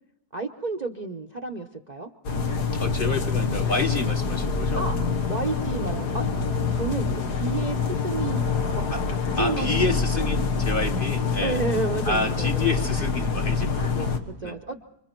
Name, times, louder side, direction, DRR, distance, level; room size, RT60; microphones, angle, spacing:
voice 1, 0.3-2.1 4.8-5.0 5.3-6.2 6.7-8.5 9.1-9.8 10.9-11.0 11.4-12.6 13.8-14.8, right 3 dB, 35° right, 3 dB, 0.7 m, -31 dB
sound 1, 2.2-14.2, left 5 dB, 85° left, 2.0 m, -26 dB
voice 2, 2.8-4.8 8.9-9.0 9.4-11.6 12.0-14.1 14.4-14.6, left 3 dB, 35° left, 4 dB, 1.2 m, -28 dB
26.5 x 25.0 x 4.5 m, 0.76 s
omnidirectional pair, 1.7 m